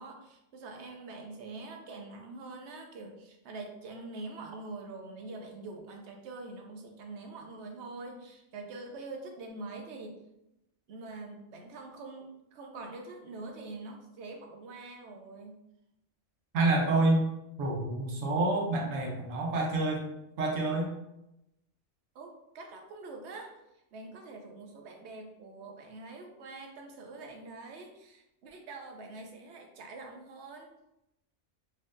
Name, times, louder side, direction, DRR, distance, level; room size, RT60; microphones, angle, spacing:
voice 1, 0.0-10.2 10.9-15.6 22.1-23.5 23.9-30.7, right 3 dB, 65° right, 2 dB, 0.9 m, -44 dB
voice 2, 16.5-17.2 17.6-20.1 20.4-20.9, right 2 dB, 80° right, 0 dB, 1.2 m, -27 dB
4.1 x 2.7 x 2.5 m, 0.89 s
omnidirectional pair, 1.3 m